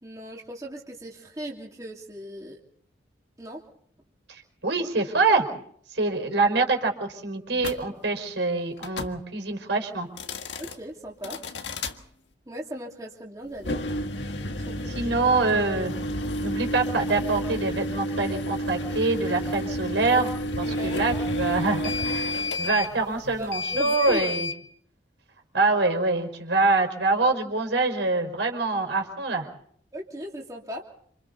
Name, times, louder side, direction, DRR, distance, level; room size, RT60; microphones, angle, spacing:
voice 1, 0.0-2.6 3.4-3.6 10.6-11.4 12.5-13.9 14.5-15.1 20.6-21.0 23.3-24.2 29.9-30.8, equal, 20° right, -2 dB, 2.9 m, -37 dB
voice 2, 4.3-5.5 5.9-10.1 14.9-15.9 16.4-24.5 25.5-29.5, right 3 dB, 80° right, 4 dB, 4.9 m, -25 dB
sound 1, 7.6-7.8 8.8-9.2 10.1-10.8 11.2-12.0 13.5-24.6, left 1 dB, 80° left, 1.7 m, -30 dB
28.0 x 27.5 x 4.1 m, 0.63 s
head